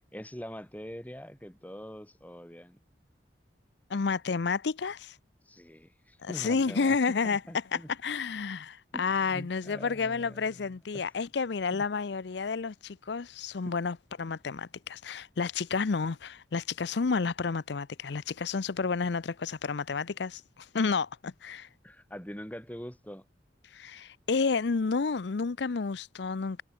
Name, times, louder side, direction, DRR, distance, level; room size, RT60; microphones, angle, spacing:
voice 1, 0.0-2.8 5.4-7.0 7.2-7.9 8.9-11.0 11.7-11.8 13.6-13.8 21.8-23.2, equal, 10° left, 1.7 m, -44 dB
voice 2, 3.9-5.2 6.2-7.4 7.7-21.7 23.7-26.6, left 4 dB, 65° left, 0.5 m, -30 dB
head